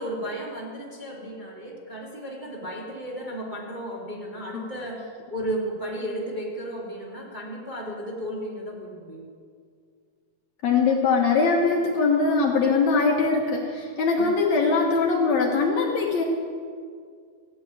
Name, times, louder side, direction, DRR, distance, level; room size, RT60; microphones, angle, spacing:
voice 1, 0.0-5.0 5.3-9.2 14.2-14.3, right 1 dB, 15° right, -6 dB, 2.1 m, -34 dB
voice 2, 10.6-16.2, left 4 dB, 65° left, 1 dB, 2.1 m, -22 dB
15.0 x 7.5 x 9.4 m, 2.1 s
omnidirectional pair, 3.8 m